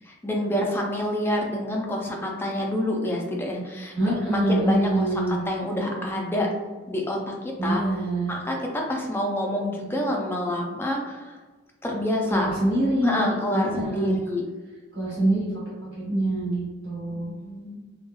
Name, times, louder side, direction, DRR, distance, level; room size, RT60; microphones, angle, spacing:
voice 1, 0.1-6.5 6.9-7.8 8.3-11.4 11.8-12.5 13.0-14.4 17.1-17.8, left 1 dB, 10° left, 0 dB, 0.4 m, -28 dB
voice 2, 3.9-5.4 7.6-8.3 12.3-14.2 14.9-17.3, right 1 dB, 65° right, -10 dB, 1.3 m, -25 dB
3.0 x 2.3 x 2.2 m, 1.3 s
head